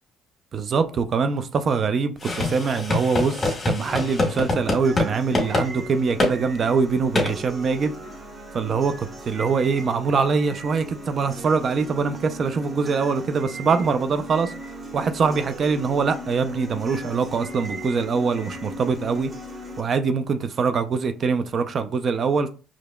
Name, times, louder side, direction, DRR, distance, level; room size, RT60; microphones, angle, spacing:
voice 1, 0.5-7.9 8.5-14.5 14.9-19.3 19.8-22.5, right 5 dB, 50° right, 0.4 m, -23 dB
sound 1, 2.2-5.1 5.3-5.7 6.2-6.3 7.2-7.3, left 2 dB, 30° left, 1.5 m, -24 dB
sound 2, 3.8-19.8, right 1 dB, 25° right, 1.1 m, -37 dB
4.7 x 2.8 x 2.2 m
hypercardioid pair, 65°, 0 cm